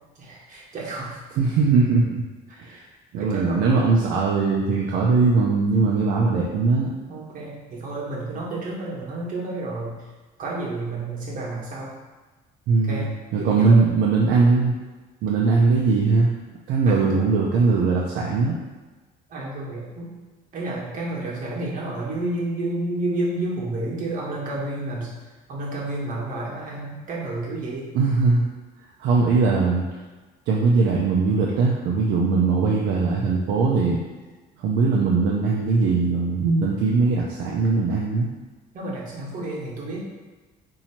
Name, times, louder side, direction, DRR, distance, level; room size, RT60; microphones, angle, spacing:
voice 1, 0.2-1.2 2.5-2.9 3.2-3.6 7.1-9.9 10.4-11.9 12.8-13.1 13.4-13.8 16.9-17.2 19.3-20.2 20.5-25.1 25.5-27.9 38.7-40.1, right 2 dB, 55° right, -5 dB, 1.1 m, -30 dB
voice 2, 1.4-2.3 2.6-2.8 3.1-6.9 12.7-14.7 15.2-16.3 16.7-18.6 27.9-28.5 29.0-30.0 30.5-34.0 34.6-38.3, right 4 dB, 80° right, -3 dB, 0.5 m, -20 dB
2.8 x 2.7 x 4.3 m, 1.3 s
cardioid pair, 110°, 17 cm